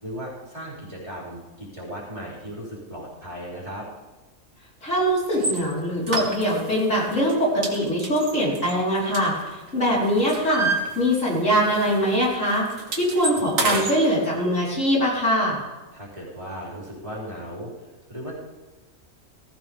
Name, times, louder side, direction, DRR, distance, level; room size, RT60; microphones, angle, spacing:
voice 1, 0.0-3.9 15.9-18.3, equal, 25° right, -6 dB, 4.3 m, -36 dB
voice 2, 4.8-10.7 10.9-12.6 12.9-15.6, equal, 65° left, -5 dB, 4.9 m, -22 dB
sound 1, 5.3-5.6 6.1-6.8 7.1-7.3 7.6-9.7 10.0-11.5 11.7-11.9 12.2-14.0, right 3 dB, 80° right, 2.2 m, -28 dB
19.0 x 15.0 x 3.6 m, 1.2 s
omnidirectional pair, 1.4 m